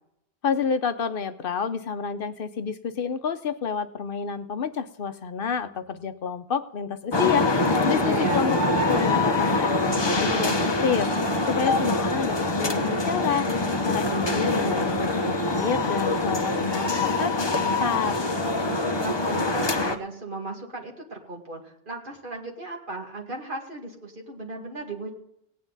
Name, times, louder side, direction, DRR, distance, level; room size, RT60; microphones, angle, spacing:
voice 1, 0.4-8.6 8.9-18.2, left 6 dB, 65° left, 10 dB, 0.8 m, -29 dB
sound 1, 7.1-20.0, left 2 dB, 25° left, 0.9 m, -24 dB
voice 2, 7.7-8.5 18.6-25.1, right 3 dB, 55° right, 0 dB, 2.3 m, -36 dB
17.5 x 9.4 x 3.9 m, 0.78 s
omnidirectional pair, 1.0 m